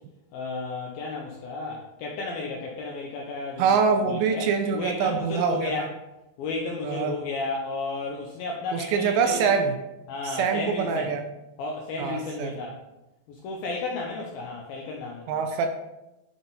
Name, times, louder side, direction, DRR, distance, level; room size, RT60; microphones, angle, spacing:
voice 1, 0.3-3.7 4.1-5.9 6.4-9.5 10.1-11.1 11.6-12.8 13.3-15.4, left 3 dB, 85° left, -1 dB, 2.1 m, -33 dB
voice 2, 3.6-5.9 6.8-7.2 8.7-9.8 10.2-11.2 12.0-12.5 15.3-15.7, right 6 dB, 80° right, 6 dB, 2.7 m, -24 dB
9.8 x 4.0 x 3.9 m, 0.95 s
omnidirectional pair, 5.2 m